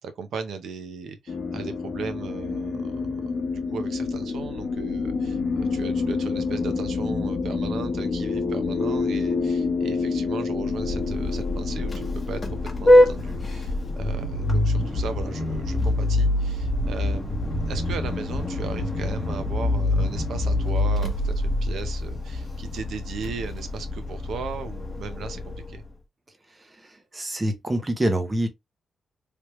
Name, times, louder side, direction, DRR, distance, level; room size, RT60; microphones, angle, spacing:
voice 1, 0.0-25.8, right 5 dB, 75° right, 0.7 m, -37 dB
sound 1, 1.3-15.8, left 4 dB, 45° left, 0.9 m, -29 dB
Vehicle horn car horn honking, 10.5-25.9, left 1 dB, 20° left, 0.9 m, -25 dB
voice 2, 26.5-28.5, right 1 dB, 15° right, 0.7 m, -27 dB
3.3 x 3.0 x 3.0 m
wide cardioid pair, 165°, 0 cm